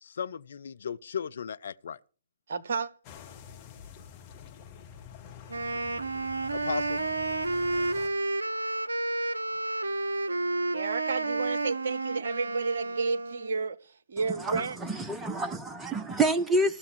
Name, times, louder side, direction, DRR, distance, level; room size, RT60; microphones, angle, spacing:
voice 1, 0.0-2.0 6.5-7.0, left 7 dB, 55° left, 0.6 m, -36 dB
voice 2, 2.5-2.9 10.7-13.8 14.1-14.8, right 4 dB, 50° right, 1.0 m, -31 dB
sound 1, 3.0-8.1, left 8 dB, 25° left, 2.4 m, -47 dB
Wind instrument woodwind instrument, 5.5-13.6, right 2 dB, 70° right, 0.6 m, -31 dB
voice 3, 14.3-16.8, right 2 dB, 10° right, 0.9 m, -28 dB
15.5 x 7.0 x 6.7 m
figure-of-eight pair, 125°, 0 cm